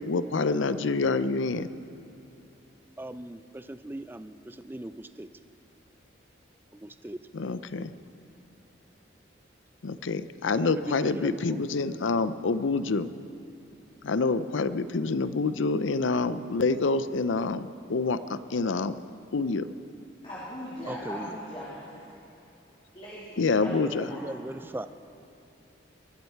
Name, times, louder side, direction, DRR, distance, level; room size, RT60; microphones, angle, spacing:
voice 1, 0.0-1.7 7.3-7.9 9.8-13.1 14.0-19.0 19.3-19.7 23.4-24.1, left 3 dB, 85° left, 13 dB, 0.6 m, -27 dB
voice 2, 3.0-5.3 6.7-7.2 10.6-11.6 20.9-21.3 23.8-24.9, right 1 dB, 10° right, 12 dB, 0.4 m, -39 dB
voice 3, 20.2-22.1 22.9-24.2, equal, 30° left, -9 dB, 3.0 m, -40 dB
23.5 x 13.5 x 4.6 m, 2.8 s
head